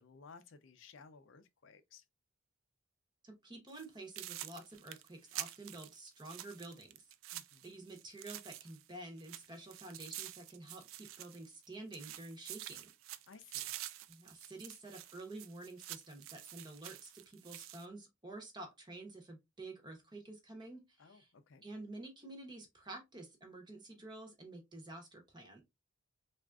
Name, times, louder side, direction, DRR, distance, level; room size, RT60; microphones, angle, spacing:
voice 1, 0.0-2.0 7.3-7.9 13.3-13.7 21.0-21.6, left 5 dB, 65° left, 0.5 m, -58 dB
voice 2, 3.2-7.1 7.6-12.9 14.1-21.3 21.6-25.6, right 2 dB, 20° right, 0.8 m, -50 dB
sound 1, 3.7-3.9 4.2-8.9 9.2-11.7 11.9-17.9, right 13 dB, 75° right, 0.3 m, -48 dB
3.5 x 2.4 x 2.2 m
head